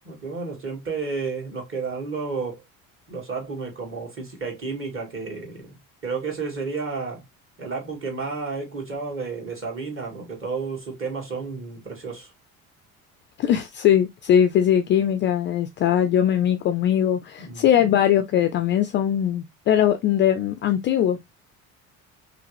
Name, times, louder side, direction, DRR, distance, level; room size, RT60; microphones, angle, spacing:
voice 1, 0.1-2.6 3.1-7.2 7.6-12.3 17.4-17.7, right 4 dB, 30° right, 2.0 m, -31 dB
voice 2, 13.4-21.3, left 10 dB, 30° left, 0.4 m, -21 dB
5.3 x 2.1 x 3.2 m
figure-of-eight pair, 60°, 43 cm